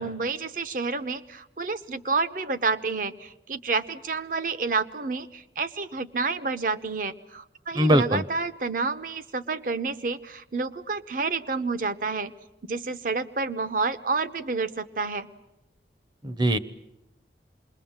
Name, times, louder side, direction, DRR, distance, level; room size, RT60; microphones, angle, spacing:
voice 1, 0.0-12.3 12.7-15.3, right 4 dB, 50° right, 12 dB, 0.9 m, -29 dB
voice 2, 7.8-8.2 16.2-16.6, right 1 dB, 25° right, 14 dB, 0.8 m, -21 dB
27.5 x 21.5 x 7.3 m, 0.93 s
head